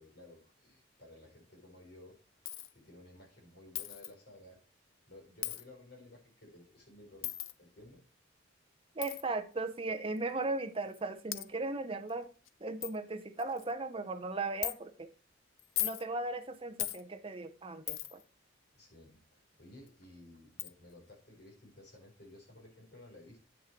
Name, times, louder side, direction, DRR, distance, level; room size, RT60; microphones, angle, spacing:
voice 1, 0.0-2.2 2.7-4.6 5.1-7.3 7.6-8.0 18.7-23.4, left 1 dB, 55° left, 4.4 m, -55 dB
Coin (dropping), 2.4-2.7 3.7-4.1 5.4-5.6 7.2-7.5 9.0-9.2 10.2-10.3 10.9-11.0 11.3-11.5 12.1-12.2 12.5-12.6 12.8-12.9 13.4-13.7 14.6-14.7 15.6-16.0 16.8-17.0 17.9-18.2 19.9-20.0 20.6-20.7, left 14 dB, 80° left, 0.5 m, -37 dB
voice 2, 8.9-12.3 12.6-15.1 15.8-18.2, right 3 dB, 30° right, 0.8 m, -37 dB
9.1 x 6.3 x 4.5 m
head